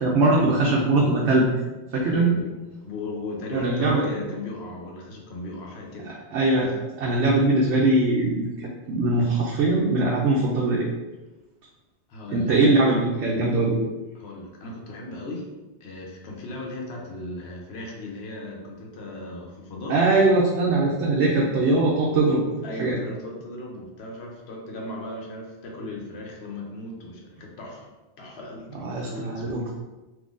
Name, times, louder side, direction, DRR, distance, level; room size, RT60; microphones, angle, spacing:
voice 1, 0.0-1.5 1.9-2.4 3.5-4.0 6.3-10.9 12.3-13.8 19.9-22.4 22.8-23.0 28.8-29.7, right 2 dB, 80° right, -4 dB, 0.9 m, -21 dB
voice 2, 2.1-2.5 2.8-6.1 12.1-12.5 14.2-15.5 15.8-20.0 22.6-27.9 28.2-29.7, left 2 dB, 70° left, 0 dB, 0.9 m, -36 dB
3.7 x 2.6 x 2.5 m, 1.1 s
omnidirectional pair, 1.1 m